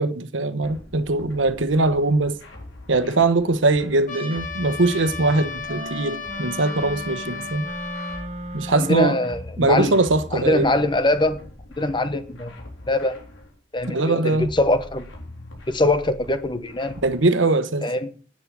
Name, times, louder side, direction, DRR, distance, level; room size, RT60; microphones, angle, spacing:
voice 1, 0.0-2.4 2.9-7.6 8.5-9.2 9.6-10.7 13.9-14.5 17.0-17.9, right 2 dB, 80° right, 1.1 m, -21 dB
sound 1, 0.6-17.2, left 1 dB, 90° left, 4.1 m, -43 dB
Trumpet, 4.1-8.3, left 4 dB, 45° left, 2.5 m, -34 dB
sound 2, 5.7-9.5, right 1 dB, 35° right, 1.0 m, -36 dB
voice 2, 8.7-9.9 10.3-11.4 11.8-12.5 12.9-13.1 13.7-15.1 15.7-17.0 17.8-18.1, left 1 dB, 25° left, 1.0 m, -22 dB
10.5 x 8.8 x 6.3 m
head